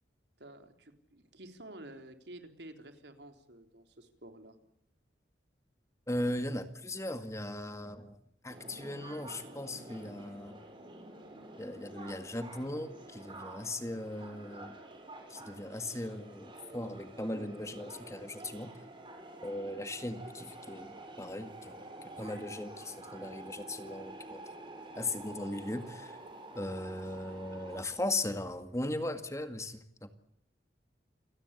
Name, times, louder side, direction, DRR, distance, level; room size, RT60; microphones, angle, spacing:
voice 1, 0.4-4.6, right 1 dB, 75° right, 7 dB, 3.8 m, -51 dB
voice 2, 6.1-8.2 8.4-10.6 11.6-14.8 15.3-18.7 19.4-21.8 22.2-24.4 25.0-26.2 26.6-30.1, left 1 dB, 15° left, 9 dB, 1.9 m, -38 dB
sound 1, 8.5-27.8, right 2 dB, 30° right, 6.4 m, -49 dB
29.0 x 19.0 x 8.4 m, 0.76 s
head